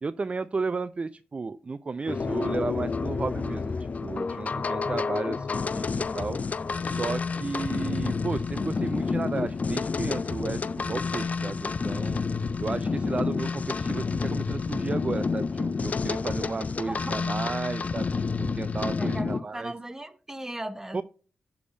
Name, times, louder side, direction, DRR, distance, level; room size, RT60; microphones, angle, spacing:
voice 1, 0.0-6.4 6.8-12.2 12.6-19.7 20.9-21.0, right 4 dB, 35° right, 0.3 m, -33 dB
sound 1, 2.1-19.4, left 4 dB, 45° left, 0.4 m, -29 dB
voice 2, 19.0-21.0, right 1 dB, 10° right, 0.8 m, -37 dB
7.0 x 3.4 x 5.1 m
cardioid pair, 80°, 4 cm